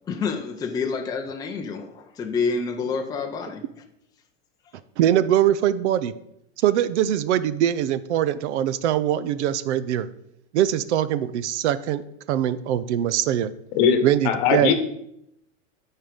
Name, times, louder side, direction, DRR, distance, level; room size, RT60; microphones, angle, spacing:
voice 1, 0.1-3.6, left 5 dB, 10° left, 2 dB, 0.6 m, -28 dB
voice 2, 5.0-6.1 6.6-10.1 10.5-12.0 12.3-13.5 14.0-14.7, right 11 dB, 65° right, 15 dB, 0.7 m, -22 dB
voice 3, 13.7-14.7, left 7 dB, 45° left, 9 dB, 1.3 m, -20 dB
12.5 x 4.6 x 5.0 m, 0.78 s
supercardioid pair, 155°, 37 cm